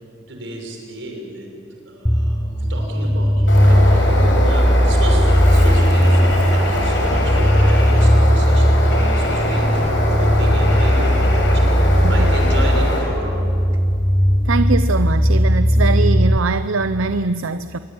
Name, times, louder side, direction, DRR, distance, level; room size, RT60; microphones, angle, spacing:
voice 1, 0.3-1.5 1.9-4.0 4.4-13.3, right 1 dB, 65° right, 1 dB, 6.0 m, -32 dB
sound 1, 2.0-16.4, equal, 5° left, 0.7 m, -16 dB
Bird, 3.5-13.0, left 1 dB, 65° left, 6.6 m, -23 dB
voice 2, 14.4-17.8, right 3 dB, 85° right, 12 dB, 0.7 m, -22 dB
26.5 x 22.5 x 9.1 m, 2.7 s
head